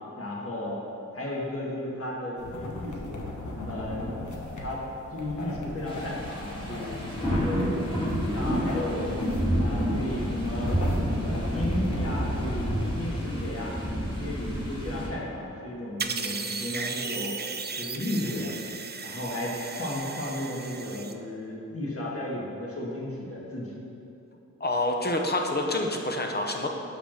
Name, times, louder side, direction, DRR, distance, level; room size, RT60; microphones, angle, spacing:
voice 1, 0.2-0.8 1.1-3.2 3.6-4.1 4.6-4.8 5.1-9.1 9.6-10.7 11.2-13.7 14.2-17.3 17.7-18.6 19.0-23.7, left 1 dB, 50° left, -4 dB, 1.8 m, -34 dB
sound 1, 2.4-12.9, left 2 dB, 70° left, 1.2 m, -38 dB
sound 2, 5.9-15.1, equal, 15° left, 1.8 m, -29 dB
sound 3, 16.0-21.1, right 5 dB, 35° right, 0.4 m, -35 dB
voice 2, 24.6-26.7, left 1 dB, 30° left, 2 dB, 0.8 m, -27 dB
5.9 x 5.9 x 6.4 m, 2.9 s
wide cardioid pair, 95°, 30 cm